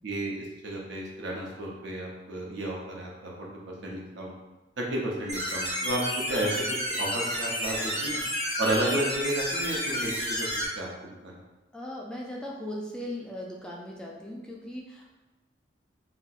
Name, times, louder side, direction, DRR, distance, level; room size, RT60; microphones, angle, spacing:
voice 1, 0.0-4.3 4.8-6.0 6.3-6.5 7.0-8.2 8.6-10.5 10.8-10.9 11.2-11.4, right 1 dB, 70° right, -2 dB, 0.7 m, -32 dB
sound 1, 5.3-10.6, equal, 35° right, 0.9 m, -31 dB
voice 2, 11.7-15.1, left 1 dB, 5° left, -3 dB, 0.3 m, -38 dB
4.2 x 2.1 x 2.4 m, 1.1 s
head